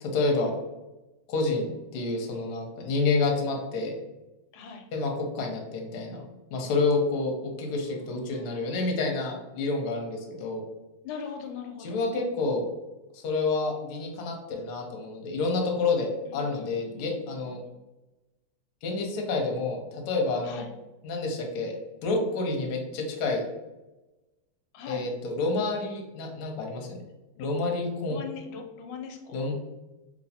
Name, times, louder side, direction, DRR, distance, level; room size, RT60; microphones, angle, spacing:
voice 1, 0.0-0.5 1.3-4.0 4.9-6.2 6.5-10.6 11.8-12.6 13.1-17.6 18.8-20.6 21.0-21.8 22.0-23.4 24.9-27.0 27.4-28.2 29.3-29.5, left 3 dB, 70° left, 1 dB, 1.1 m, -29 dB
voice 2, 4.5-4.9 7.8-8.8 11.0-12.1 16.3-17.7 20.4-20.7 24.7-25.1 27.4-27.5 28.1-29.4, left 6 dB, 85° left, 4 dB, 1.4 m, -41 dB
3.1 x 2.8 x 2.7 m, 1.0 s
omnidirectional pair, 2.3 m